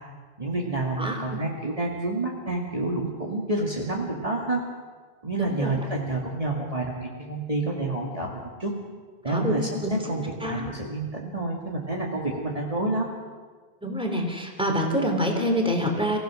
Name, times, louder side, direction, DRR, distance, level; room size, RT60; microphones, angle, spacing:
voice 1, 0.4-4.6 5.2-8.7 9.2-13.1, right 2 dB, 35° right, -2 dB, 2.3 m, -29 dB
voice 2, 5.4-5.7 9.3-9.5 10.4-10.6 13.8-16.2, equal, 5° right, 2 dB, 3.0 m, -26 dB
25.5 x 16.5 x 6.3 m, 1.5 s
omnidirectional pair, 1.1 m